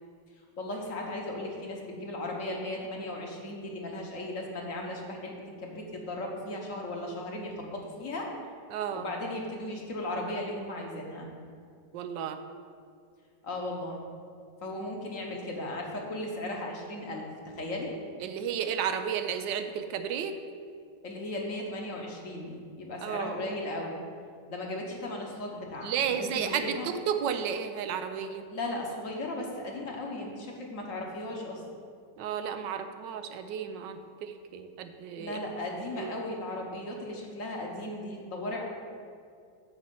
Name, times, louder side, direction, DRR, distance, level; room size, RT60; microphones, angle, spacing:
voice 1, 0.6-8.3 8.9-11.3 13.4-14.0 14.6-17.9 21.0-24.0 24.5-26.9 28.5-31.6 35.2-38.6, left 1 dB, 50° left, 0 dB, 1.5 m, -36 dB
voice 2, 8.7-9.1 11.9-12.4 18.2-20.3 23.0-23.4 25.8-28.4 32.2-35.4 36.0-36.1, right 8 dB, 90° right, 8 dB, 1.3 m, -32 dB
9.6 x 4.3 x 7.6 m, 2.2 s
omnidirectional pair, 1.9 m